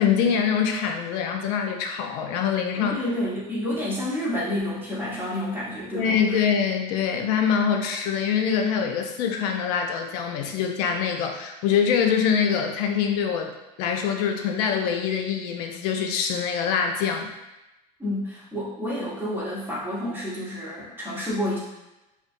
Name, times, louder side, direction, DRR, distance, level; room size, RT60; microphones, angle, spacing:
voice 1, 0.0-3.0 5.9-13.5 13.8-17.3, left 7 dB, 65° left, 3 dB, 0.5 m, -24 dB
voice 2, 2.7-6.4 18.0-21.6, left 1 dB, 10° right, -7 dB, 1.1 m, -29 dB
2.5 x 2.2 x 2.5 m, 0.99 s
hypercardioid pair, 90°, 21 cm